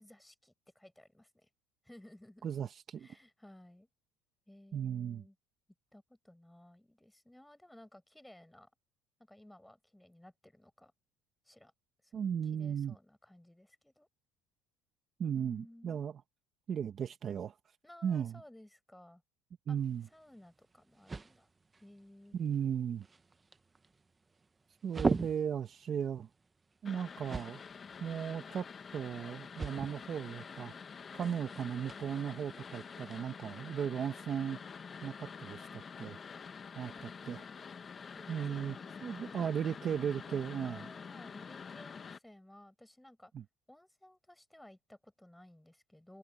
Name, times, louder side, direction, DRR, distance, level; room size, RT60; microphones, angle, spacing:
voice 1, 0.0-1.5 1.8-2.5 3.0-3.9 4.5-5.3 5.9-8.7 9.2-10.9 11.4-11.7 12.0-14.1 15.3-16.0 17.8-19.2 19.7-19.8 20.1-21.5 21.8-22.4 31.2-31.5 33.5-33.8 36.9-37.1 38.1-39.7 40.6-43.3 43.7-46.2, left 1 dB, 5° left, 5.1 m, -57 dB
voice 2, 2.4-3.1 4.7-5.2 12.1-12.9 15.2-16.1 16.7-17.6 18.0-18.4 19.7-20.1 22.3-23.0 24.8-26.3 26.8-27.6 28.0-28.7 28.9-30.7 31.1-34.6 35.0-36.2 36.7-37.4 38.3-38.8 39.0-40.8 43.3-43.4, right 8 dB, 35° right, 1.3 m, -36 dB
sound 1, 19.8-33.2, right 4 dB, 15° right, 1.0 m, -43 dB
sound 2, 26.8-42.2, left 6 dB, 25° left, 1.2 m, -47 dB
cardioid pair, 130°, 0 cm